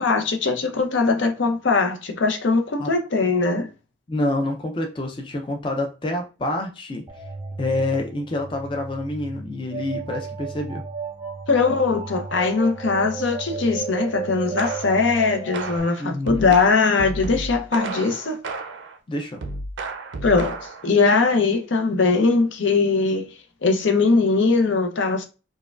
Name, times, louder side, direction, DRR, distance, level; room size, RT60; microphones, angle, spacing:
voice 1, 0.0-3.7 11.5-18.4 20.2-23.3 23.6-25.3, left 4 dB, 70° left, 0.6 m, -20 dB
voice 2, 4.1-7.1 7.6-10.9 16.0-16.5 19.1-19.4, left 1 dB, 25° left, 0.4 m, -27 dB
sound 1, 7.1-15.8, right 5 dB, 15° right, 0.7 m, -34 dB
sound 2, 14.6-15.1 15.5-19.0 19.4-20.9, right 2 dB, 70° right, 0.5 m, -32 dB
4.5 x 2.2 x 2.3 m
head